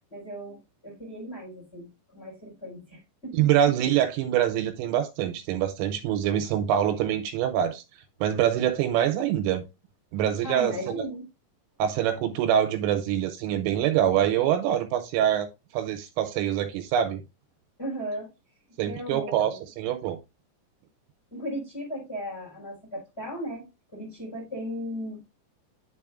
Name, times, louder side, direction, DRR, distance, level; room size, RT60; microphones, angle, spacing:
voice 1, 0.1-3.5 10.4-11.3 17.8-18.3 18.8-19.7 21.3-23.6 23.9-25.2, equal, 15° left, 3.4 m, -36 dB
voice 2, 3.3-7.8 8.2-9.6 10.1-11.1 11.8-15.5 15.7-17.2 18.8-19.5 19.8-20.2, right 10 dB, 85° right, 3.2 m, -25 dB
9.6 x 5.2 x 2.4 m
omnidirectional pair, 6.0 m